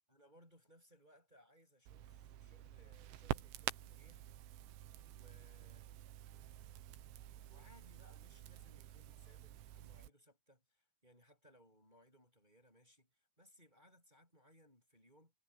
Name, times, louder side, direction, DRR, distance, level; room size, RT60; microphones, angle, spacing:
voice 1, 0.1-4.3 5.1-5.9 7.5-15.3, equal, 10° right, 7.5 m, -67 dB
Crackle, 1.9-10.1, right 13 dB, 75° right, 3.4 m, -48 dB
omnidirectional pair, 5.7 m